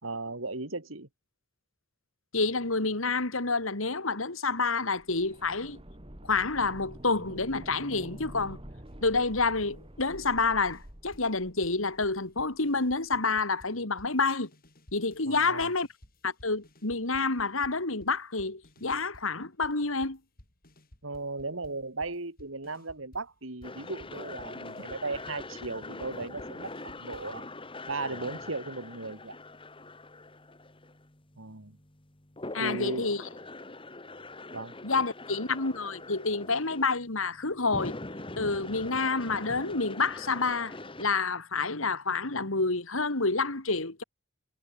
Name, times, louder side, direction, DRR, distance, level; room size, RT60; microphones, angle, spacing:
voice 1, 0.0-1.1 15.2-15.7 21.0-27.5 27.9-29.4 31.4-31.8 32.6-33.1 34.5-34.8, right 3 dB, 70° right, 2.8 m, -36 dB
voice 2, 2.3-5.8 6.2-8.6 9.0-14.5 14.9-15.9 16.2-20.2 32.5-33.2 34.8-38.0 38.4-44.0, left 3 dB, 75° left, 2.9 m, -28 dB
sound 1, 5.0-12.8 13.0-13.1, equal, 25° right, 3.5 m, -48 dB
sound 2, 8.9-11.4 11.6-15.3 15.6-19.4 19.6-27.4, equal, 45° left, 5.5 m, -56 dB
sound 3, 23.6-41.1, left 2 dB, 25° left, 2.2 m, -43 dB
head